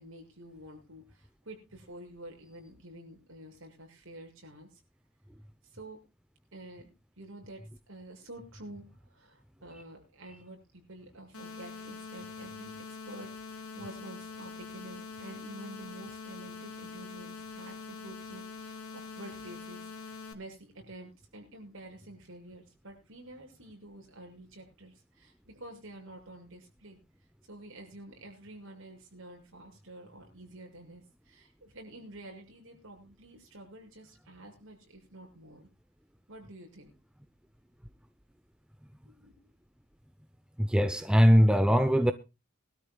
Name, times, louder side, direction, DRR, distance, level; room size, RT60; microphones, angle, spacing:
voice 1, 0.0-4.8 5.6-6.0 6.5-6.9 7.2-7.6 7.9-27.0 27.5-35.7 36.3-36.9 39.0-39.4, right 1 dB, 60° right, 6.7 m, -49 dB
sound 1, 11.3-20.3, left 5 dB, 75° left, 2.0 m, -44 dB
voice 2, 40.6-42.1, equal, 5° right, 0.6 m, -21 dB
23.0 x 13.0 x 2.3 m
head